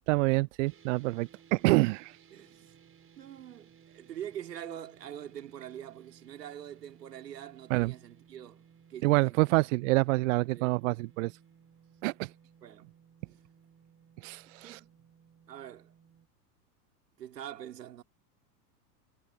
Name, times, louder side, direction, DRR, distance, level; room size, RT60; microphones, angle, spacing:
voice 1, 0.0-2.2 7.7-7.9 9.0-11.3 12.0-12.3 14.2-14.8, right 22 dB, 55° right, 0.5 m, -27 dB
sound 1, 0.6-16.3, right 7 dB, 25° right, 5.8 m, -60 dB
voice 2, 2.3-2.7 3.2-8.6 8.9-9.5 10.5-10.7 12.6-12.9 14.5-14.9 15.5-15.9 17.2-18.0, right 10 dB, 75° right, 2.9 m, -44 dB
hypercardioid pair, 90°, 49 cm